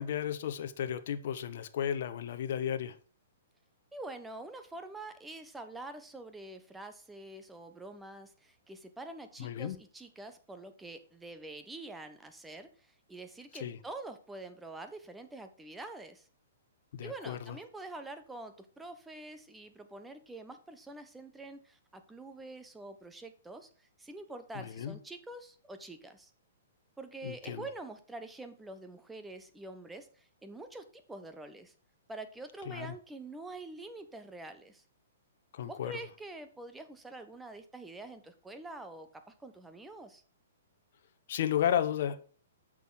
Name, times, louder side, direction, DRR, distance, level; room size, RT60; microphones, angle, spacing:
voice 1, 0.0-3.0 9.4-9.8 13.6-13.8 16.9-17.6 24.5-25.0 27.2-27.6 32.7-32.9 35.5-35.9 41.3-42.2, left 9 dB, 60° left, 9 dB, 1.0 m, -33 dB
voice 2, 3.9-16.3 17.0-26.3 27.0-31.7 32.1-34.8 35.6-40.2, right 2 dB, 5° right, 8 dB, 1.2 m, -46 dB
8.3 x 6.3 x 5.9 m, 0.41 s
hypercardioid pair, 125°, 0 cm